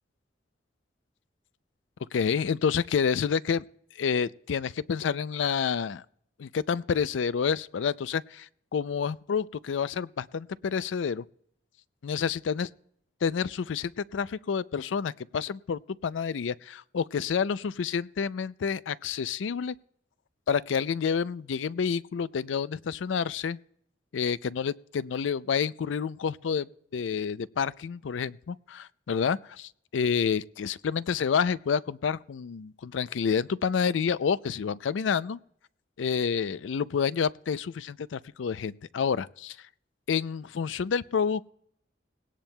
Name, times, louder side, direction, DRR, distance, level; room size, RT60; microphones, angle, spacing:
voice 1, 2.1-3.6 4.0-6.0 6.4-11.2 12.0-12.7 13.2-19.8 20.5-23.6 24.1-35.4 36.0-39.6 40.1-41.5, left 6 dB, 90° left, 0.4 m, -29 dB
20.0 x 17.5 x 2.2 m
head